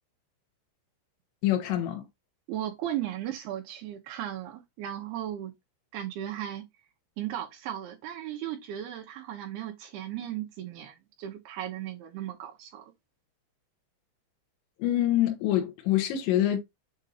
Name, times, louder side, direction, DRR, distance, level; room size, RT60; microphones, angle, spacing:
voice 1, 1.4-2.0 14.8-16.6, left 12 dB, 75° left, 3.2 m, -25 dB
voice 2, 2.5-5.5 5.9-6.7 7.2-12.9, right 11 dB, 75° right, 2.6 m, -36 dB
7.8 x 2.6 x 4.8 m
omnidirectional pair, 5.4 m